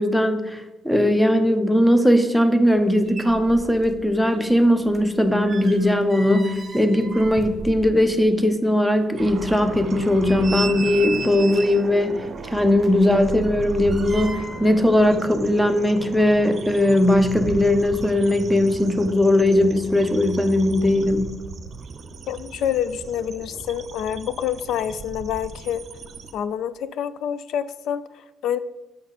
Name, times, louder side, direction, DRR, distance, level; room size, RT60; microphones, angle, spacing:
voice 1, 0.0-21.4, left 1 dB, 5° left, 9 dB, 0.8 m, -19 dB
sound 1, 2.8-2.9 3.1-4.1 4.3-8.3 8.6-8.7 9.3-9.4 9.9-11.9 12.7-14.7 15.0-15.2, right 4 dB, 25° right, 0.9 m, -35 dB
sound 2, 9.2-26.3, right 4 dB, 50° right, 0.7 m, -36 dB
voice 2, 22.3-25.8 26.3-28.6, left 9 dB, 80° left, 15 dB, 0.4 m, -27 dB
7.7 x 5.4 x 4.1 m, 1.1 s
cardioid pair, 90°, 0 cm